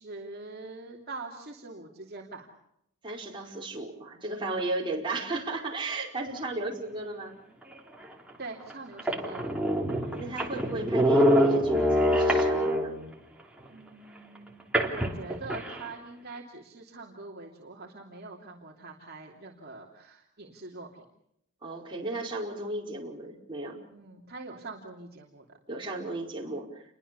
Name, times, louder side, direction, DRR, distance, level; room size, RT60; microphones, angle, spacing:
voice 1, 0.0-2.5 8.4-9.5 13.7-21.0 23.9-25.4, right 3 dB, 45° right, -1 dB, 3.0 m, -44 dB
voice 2, 3.0-7.4 9.9-12.9 21.6-23.8 25.7-26.8, right 2 dB, 20° right, -2 dB, 5.1 m, -35 dB
sound 1, 8.0-8.1 8.7-8.8 9.0-13.1 14.7-15.8, equal, 5° right, 3.3 m, -25 dB
29.5 x 22.5 x 7.0 m, 0.78 s
head